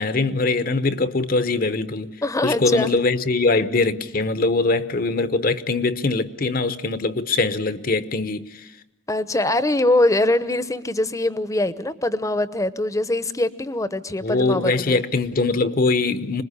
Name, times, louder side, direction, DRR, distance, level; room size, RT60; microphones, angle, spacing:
voice 1, 0.0-2.1 2.4-8.7 14.2-16.4, left 3 dB, 50° left, 1.0 m, -22 dB
voice 2, 2.2-2.9 9.1-15.0, left 1 dB, 15° left, 0.9 m, -22 dB
26.0 x 21.0 x 9.8 m
head